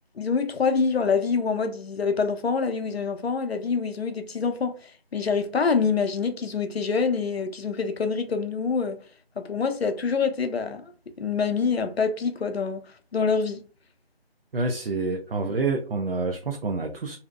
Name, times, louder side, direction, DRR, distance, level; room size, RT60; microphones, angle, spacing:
voice 1, 0.2-4.8 5.1-9.0 9.4-10.9 11.2-13.6, left 5 dB, 85° left, 0.6 m, -26 dB
voice 2, 14.5-17.2, right 3 dB, 70° right, 0.5 m, -27 dB
2.6 x 2.0 x 2.3 m
figure-of-eight pair, 175°, 30 cm